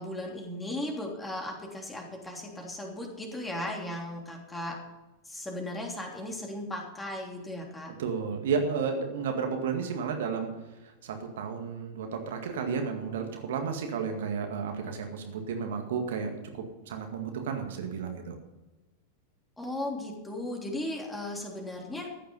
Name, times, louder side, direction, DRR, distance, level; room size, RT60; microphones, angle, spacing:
voice 1, 0.0-4.8 5.2-7.9 19.6-22.1, left 1 dB, 10° left, 0 dB, 3.2 m, -36 dB
voice 2, 8.0-18.4, right 6 dB, 60° right, 4 dB, 2.0 m, -32 dB
14.5 x 10.0 x 5.5 m, 1.1 s
figure-of-eight pair, 90°, 0 cm